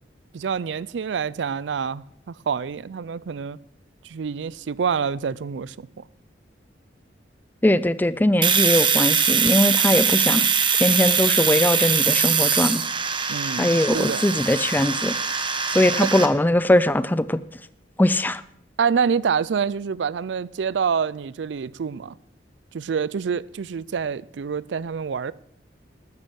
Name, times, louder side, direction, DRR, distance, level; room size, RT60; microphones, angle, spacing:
voice 1, 0.3-3.6 4.0-6.0 13.3-14.3 16.0-16.1 18.8-22.1 22.7-25.3, right 6 dB, 75° right, 0.4 m, -27 dB
voice 2, 7.6-10.5 10.7-12.8 13.6-15.2 15.7-17.4 18.0-18.4, left 1 dB, 10° left, 0.4 m, -20 dB
Domestic sounds home sounds, 8.4-16.3, right 6 dB, 25° right, 1.0 m, -22 dB
13.0 x 9.7 x 6.3 m
head